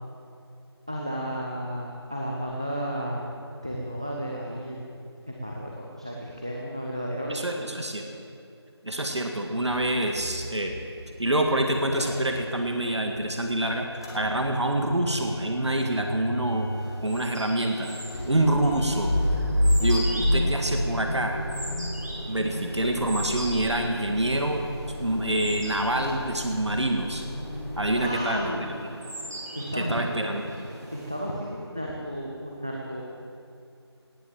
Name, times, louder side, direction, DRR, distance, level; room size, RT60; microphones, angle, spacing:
voice 1, 0.9-3.3 3.6-7.7 27.9-28.6 29.5-30.2 30.9-33.0, equal, 10° right, -2 dB, 0.6 m, -33 dB
voice 2, 7.3-8.0 8.8-10.7 11.2-16.7 17.0-17.9 18.2-19.1 19.8-21.4 22.3-24.7 25.0-27.2 27.8-28.4 29.7-30.4, right 1 dB, 80° right, 3 dB, 2.0 m, -26 dB
Motor vehicle (road) / Engine starting / Idling, 9.7-12.8 13.1-28.1, left 1 dB, 10° left, 1.0 m, -31 dB
sound 1, 16.5-31.5, right 1 dB, 35° right, 3.6 m, -41 dB
17.5 x 10.0 x 7.4 m, 2.6 s
figure-of-eight pair, 175°, 14 cm